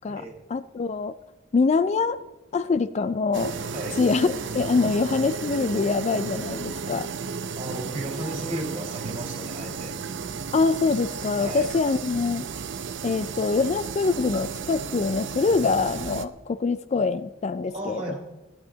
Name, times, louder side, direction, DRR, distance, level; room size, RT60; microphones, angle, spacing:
voice 1, 0.5-1.1 1.5-2.2 2.5-3.5 4.0-7.1 10.5-12.5 13.0-18.2, left 4 dB, 35° left, 14 dB, 0.3 m, -24 dB
sound 1, 3.3-16.2, right 5 dB, 70° right, 0.6 m, -34 dB
voice 2, 7.6-10.0 11.4-11.7 17.7-18.2, right 1 dB, 35° right, -1 dB, 3.5 m, -34 dB
17.0 x 11.0 x 3.9 m, 1.1 s
head